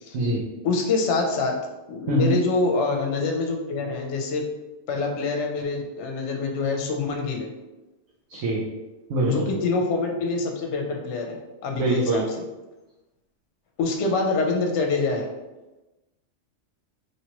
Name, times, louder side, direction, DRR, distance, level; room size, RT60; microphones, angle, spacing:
voice 1, 0.6-1.5 1.9-4.4 4.9-7.5 9.2-11.4 11.6-12.2 13.8-15.3, left 3 dB, 75° left, 2 dB, 0.9 m, -25 dB
voice 2, 8.3-8.6 9.1-9.5 11.7-12.2, right 2 dB, 80° right, -4 dB, 1.0 m, -23 dB
3.2 x 2.9 x 2.9 m, 1.1 s
omnidirectional pair, 1.3 m